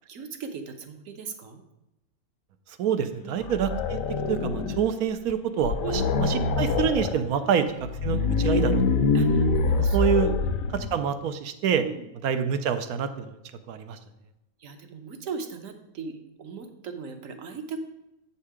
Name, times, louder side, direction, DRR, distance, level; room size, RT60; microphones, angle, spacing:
voice 1, 0.1-1.6 3.2-3.5 5.8-6.1 7.4-7.5 9.1-10.0 10.2-10.5 11.8-12.1 14.6-17.8, right 5 dB, 65° right, 7 dB, 1.2 m, -38 dB
voice 2, 2.8-4.0 4.3-5.8 6.2-7.6 8.0-9.0 9.8-10.3 10.9-11.8 12.2-13.4 13.7-14.0, right 8 dB, 85° right, 9 dB, 1.2 m, -26 dB
sound 1, 3.4-4.9 5.3-5.4 5.6-7.2 7.8-11.0, left 4 dB, 70° left, 1.0 m, -25 dB
7.9 x 5.6 x 4.9 m, 0.90 s
omnidirectional pair, 1.5 m